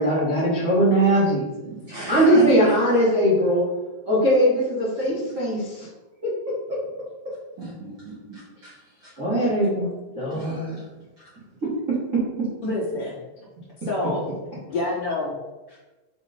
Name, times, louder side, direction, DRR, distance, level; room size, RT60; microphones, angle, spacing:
voice 1, 0.0-1.4 2.1-3.7 4.1-5.9 6.2-6.3 6.7-6.8 9.2-9.9 10.1-10.7 11.9-12.5, right 1 dB, 45° right, -8 dB, 1.0 m, -20 dB
voice 2, 1.6-3.0 5.0-5.3 7.6-9.1 9.4-9.5 10.3-10.8 11.2-11.3, right 1 dB, 75° right, -8 dB, 1.1 m, -37 dB
voice 3, 12.6-13.2 13.8-14.2 14.7-15.4 15.7-15.8, left 2 dB, 30° left, -8 dB, 2.5 m, -28 dB
9.4 x 3.9 x 4.5 m, 1.1 s
omnidirectional pair, 5.7 m